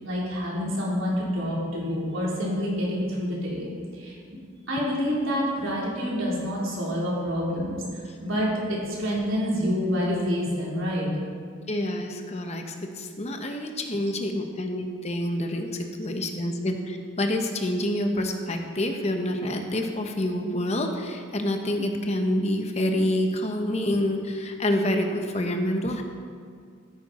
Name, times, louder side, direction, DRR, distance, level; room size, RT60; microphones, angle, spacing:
voice 1, 0.0-3.7 4.0-4.2 4.7-11.1, equal, 80° right, -5 dB, 3.6 m, -27 dB
voice 2, 11.7-26.0, left 1 dB, 35° left, 4 dB, 0.9 m, -27 dB
13.5 x 9.6 x 4.2 m, 2.1 s
head